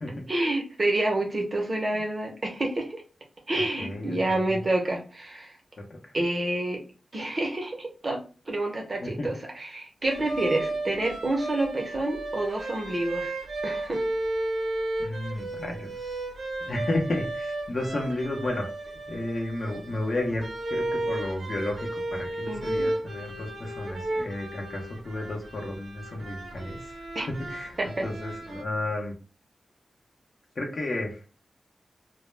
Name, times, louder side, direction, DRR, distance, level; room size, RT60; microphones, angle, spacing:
voice 1, 0.3-3.0 3.5-5.5 6.1-6.8 7.1-8.2 8.5-13.4 13.6-14.0 22.5-22.9 27.1-27.3 27.8-28.0, right 2 dB, 35° right, 1 dB, 0.6 m, -28 dB
voice 2, 3.5-4.6 6.0-6.1 9.0-9.3 15.0-16.2 16.7-18.7 19.1-29.1 30.5-31.4, left 1 dB, 45° left, 0 dB, 0.6 m, -33 dB
sound 1, 10.0-28.6, right 2 dB, 75° right, 0.7 m, -34 dB
2.1 x 2.0 x 3.1 m, 0.36 s
wide cardioid pair, 145°, 0 cm